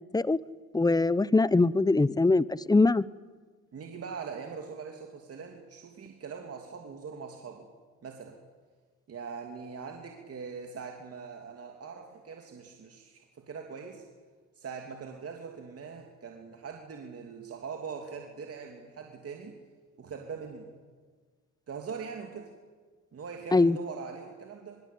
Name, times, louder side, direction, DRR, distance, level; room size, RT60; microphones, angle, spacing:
voice 1, 0.7-3.0 23.5-23.8, left 3 dB, 15° left, 19 dB, 0.7 m, -22 dB
voice 2, 3.7-7.7 8.0-8.4 9.1-14.0 14.5-19.6 20.0-20.7 21.7-22.5 23.1-24.8, right 5 dB, 50° right, 2 dB, 2.9 m, -42 dB
24.0 x 23.0 x 8.6 m, 1.5 s
cardioid pair, 90°, 30 cm